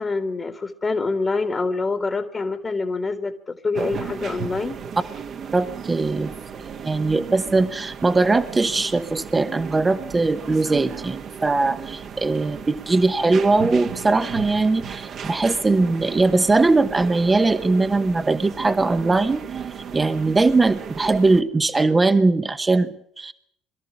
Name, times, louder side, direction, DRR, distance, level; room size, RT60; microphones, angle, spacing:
voice 1, 0.0-4.8, left 3 dB, 25° left, 9 dB, 1.7 m, -26 dB
sound 1, 3.7-21.4, right 7 dB, 45° right, 1.5 m, -35 dB
voice 2, 5.5-6.3 6.8-19.4 19.9-23.3, right 3 dB, 20° right, 11 dB, 1.0 m, -20 dB
22.0 x 13.5 x 9.7 m, 0.71 s
figure-of-eight pair, 55°, 0 cm